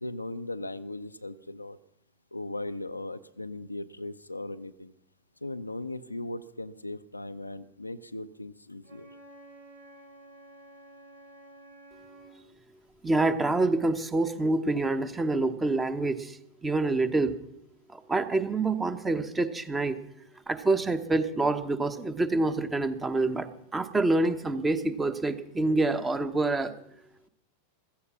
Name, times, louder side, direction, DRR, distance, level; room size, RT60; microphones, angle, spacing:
voice 1, 0.0-1.8 2.3-4.9 5.4-9.1, left 2 dB, 85° left, 9 dB, 0.6 m, -38 dB
Wind instrument woodwind instrument, 8.8-12.4, right 1 dB, 80° right, 3.7 m, -51 dB
voice 2, 13.0-17.4 17.9-20.0 20.5-26.7, right 2 dB, 15° right, 11 dB, 1.1 m, -27 dB
15.5 x 14.0 x 5.8 m, 0.76 s
figure-of-eight pair, 90°, 0 cm